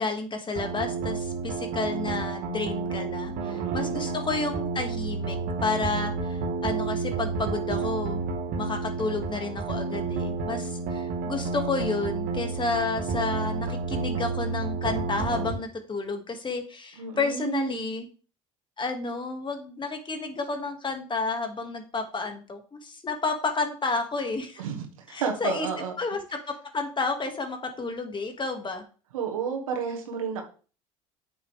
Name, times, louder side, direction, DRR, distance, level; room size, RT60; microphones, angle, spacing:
voice 1, 0.0-8.2 8.6-18.1 18.8-24.6 25.1-25.7 26.0-28.9, left 3 dB, 30° left, 5 dB, 2.2 m, -31 dB
sound 1, 0.6-15.5, right 4 dB, 60° right, 2.5 m, -30 dB
voice 2, 3.4-4.1 17.0-17.8 24.6-25.9 29.1-30.4, right 6 dB, 85° right, 3 dB, 2.0 m, -32 dB
8.7 x 7.2 x 3.6 m, 0.37 s
hypercardioid pair, 70°, 17 cm